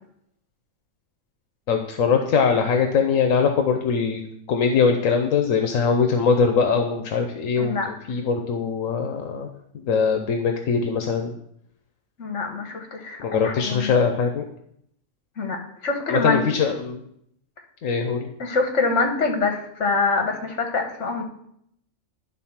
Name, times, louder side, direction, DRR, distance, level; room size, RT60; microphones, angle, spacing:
voice 1, 1.7-4.2 4.5-9.5 9.7-11.3 13.2-14.4 16.1-17.0 17.8-18.3, left 5 dB, 85° left, 4 dB, 1.2 m, -22 dB
voice 2, 7.6-7.9 12.2-14.0 15.4-16.6 18.4-21.2, left 4 dB, 65° left, 3 dB, 1.7 m, -25 dB
11.5 x 4.0 x 5.7 m, 0.73 s
omnidirectional pair, 1.3 m